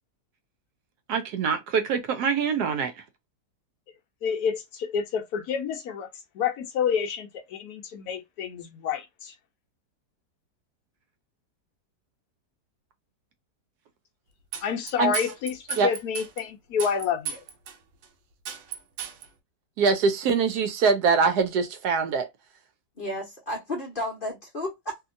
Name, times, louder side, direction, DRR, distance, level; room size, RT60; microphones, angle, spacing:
voice 1, 1.1-2.9 15.0-15.1 15.8-15.9 19.8-22.3, right 5 dB, 70° right, 1.1 m, -23 dB
voice 2, 4.2-6.1 6.3-9.3 14.6-17.4, left 7 dB, 70° left, 1.0 m, -29 dB
sound 1, 14.5-16.4 16.8-17.7 18.0-18.1 18.4-19.3, right 9 dB, 90° right, 1.4 m, -34 dB
voice 3, 23.0-25.0, left 1 dB, 45° left, 0.7 m, -32 dB
2.8 x 2.7 x 2.5 m
omnidirectional pair, 1.9 m